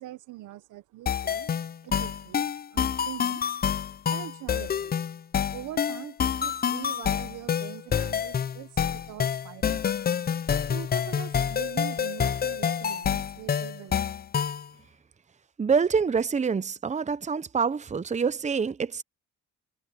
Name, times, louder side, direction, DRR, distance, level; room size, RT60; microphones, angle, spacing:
voice 1, 0.0-1.5 1.8-3.4 4.1-5.0 5.5-9.9 10.7-14.3, right 15 dB, 90° right, 1.1 m, -43 dB
sound 1, 1.1-14.7, left 8 dB, 30° left, 0.5 m, -28 dB
voice 2, 15.6-19.0, right 5 dB, 25° right, 0.8 m, -26 dB
cardioid pair, 90°, 30 cm